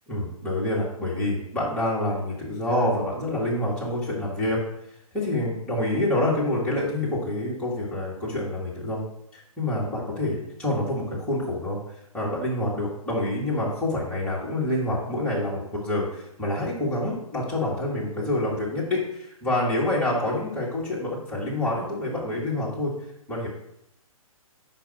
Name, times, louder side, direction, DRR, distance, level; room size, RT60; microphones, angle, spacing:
voice 1, 0.1-4.6 5.1-9.0 9.3-11.8 12.1-22.9 23.3-23.5, left 1 dB, 5° left, -7 dB, 1.8 m, -27 dB
5.3 x 4.6 x 5.7 m, 0.80 s
figure-of-eight pair, 125°, 19 cm